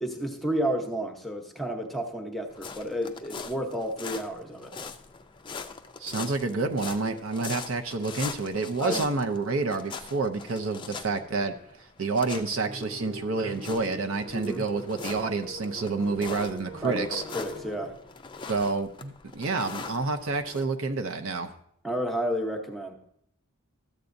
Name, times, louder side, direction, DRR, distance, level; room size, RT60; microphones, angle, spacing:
voice 1, 0.0-4.7 8.8-9.1 14.3-14.6 16.8-17.9 21.8-22.9, equal, ahead, 2 dB, 0.8 m, -31 dB
sound 1, 2.5-20.6, left 5 dB, 20° left, 0.4 m, -42 dB
voice 2, 6.0-11.5 12.0-17.2 18.5-21.5, right 3 dB, 65° right, 5 dB, 0.6 m, -29 dB
sound 2, 12.6-17.9, equal, 30° right, 0.9 m, -42 dB
13.5 x 8.1 x 2.6 m, 0.69 s
head